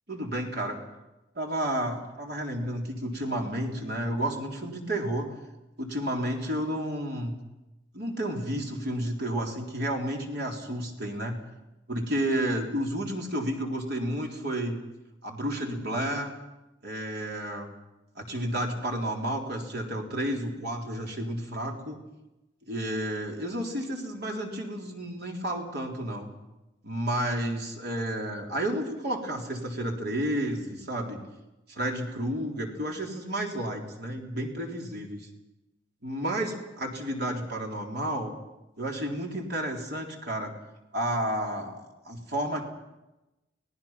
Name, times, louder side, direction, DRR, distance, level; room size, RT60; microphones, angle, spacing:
voice 1, 0.1-0.8 1.4-5.3 5.8-7.3 7.9-11.4 11.9-14.8 15.2-16.3 16.8-17.7 18.2-22.0 22.7-26.3 26.8-31.2 31.7-35.3 36.0-38.3 38.8-40.5 40.9-42.6, right 1 dB, 60° right, 1 dB, 4.0 m, -31 dB
30.0 x 19.0 x 5.9 m, 1.0 s
head